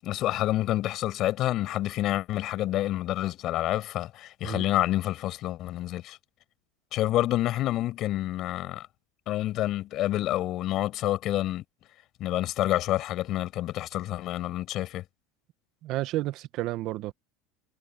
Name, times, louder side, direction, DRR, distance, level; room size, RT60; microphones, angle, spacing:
voice 1, 0.0-6.2 6.9-8.9 9.3-11.6 12.2-15.0, left 14 dB, 40° left, 6.3 m, -28 dB
voice 2, 15.8-17.1, right 16 dB, 45° right, 1.3 m, -31 dB
supercardioid pair, 150°, 0 cm